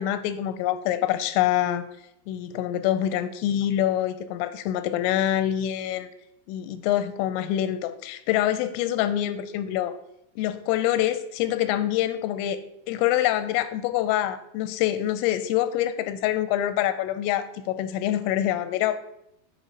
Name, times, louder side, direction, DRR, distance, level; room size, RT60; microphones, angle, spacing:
voice 1, 0.0-1.9 2.3-6.1 6.5-10.0 10.4-12.6 12.9-18.9, left 12 dB, 90° left, 11 dB, 3.2 m, -25 dB
7.4 x 5.5 x 4.0 m, 0.80 s
omnidirectional pair, 5.7 m